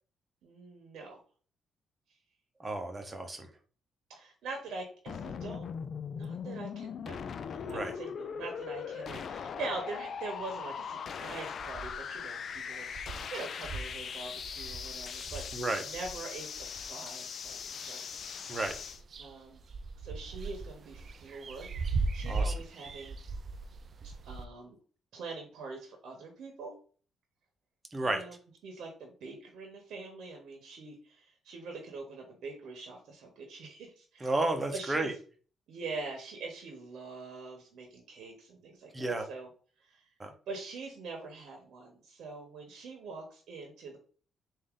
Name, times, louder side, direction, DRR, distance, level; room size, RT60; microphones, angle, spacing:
voice 1, 0.4-1.2 4.1-5.7 6.1-12.9 13.3-18.0 18.5-18.6 19.2-19.6 20.0-23.2 24.0-24.8 25.1-26.8 28.0-28.3 28.6-34.3 34.7-35.1 35.7-39.5 39.8-40.0 40.5-44.0, right 3 dB, 75° right, 2 dB, 1.0 m, -44 dB
voice 2, 2.6-3.5 7.6-7.9 15.5-15.8 18.5-18.8 22.3-22.5 27.9-28.2 34.2-35.1 38.9-39.3 40.2-40.3, right 2 dB, 20° right, 6 dB, 0.8 m, -32 dB
sound 1, 5.1-19.0, left 7 dB, 55° left, 0.3 m, -40 dB
sound 2, 11.6-12.2 12.6-12.7 12.9-16.9 17.5-18.3 18.6-24.5, right 3 dB, 50° right, 0.4 m, -38 dB
3.6 x 2.6 x 3.7 m, 0.41 s
cardioid pair, 90°, 0 cm